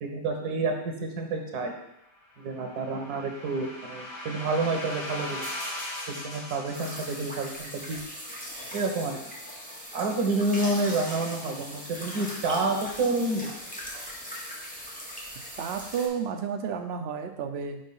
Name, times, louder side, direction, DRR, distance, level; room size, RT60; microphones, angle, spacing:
voice 1, 0.0-1.7 2.4-5.4 6.1-8.0 8.7-9.2 9.9-13.5, right 3 dB, 90° right, 3 dB, 1.5 m, -29 dB
sound 1, 2.3-7.6, left 1 dB, 25° left, 2.0 m, -39 dB
sound 2, 6.7-16.1, equal, 5° left, 1.3 m, -40 dB
voice 2, 15.6-17.8, right 7 dB, 55° right, 5 dB, 0.8 m, -31 dB
5.4 x 4.9 x 5.4 m, 0.82 s
omnidirectional pair, 1.6 m